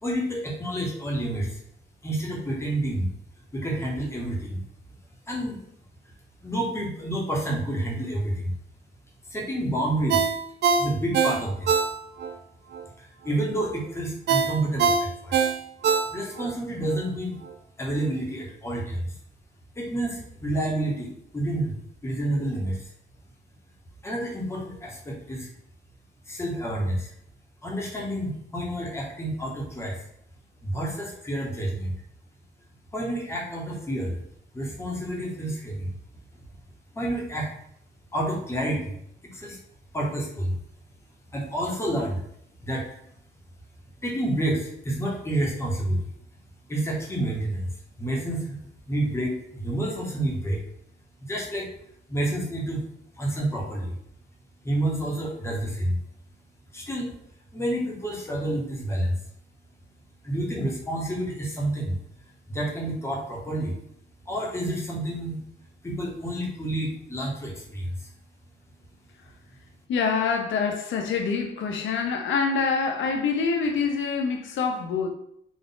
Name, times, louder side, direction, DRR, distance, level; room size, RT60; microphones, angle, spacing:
voice 1, 0.0-1.6 2.0-3.1 3.5-4.6 5.3-5.6 6.4-8.5 9.3-10.3 10.8-11.8 13.0-15.4 16.1-17.4 17.8-19.1 19.8-21.7 22.0-22.9 24.0-25.5 26.3-27.1 27.6-30.0 30.6-31.9 32.9-34.2 34.5-35.9 36.9-37.5 38.1-39.0 39.2-39.6 39.9-40.5 41.3-42.2 42.6-42.9 44.0-46.1 46.7-47.7 48.0-48.6 48.9-50.6 51.3-51.7 52.1-52.8 53.2-54.0 54.6-56.0 56.7-57.1 57.5-59.2 60.2-62.0 62.5-63.8 64.3-65.4 65.8-68.1, right 1 dB, 15° left, 1.0 m, -29 dB
Ringtone, 10.1-12.4 12.7-12.8 14.3-16.5 16.9-17.0, right 6 dB, 65° right, 0.4 m, -23 dB
voice 2, 69.9-75.1, left 5 dB, 85° left, 0.7 m, -26 dB
4.0 x 2.4 x 3.8 m
wide cardioid pair, 155°, 19 cm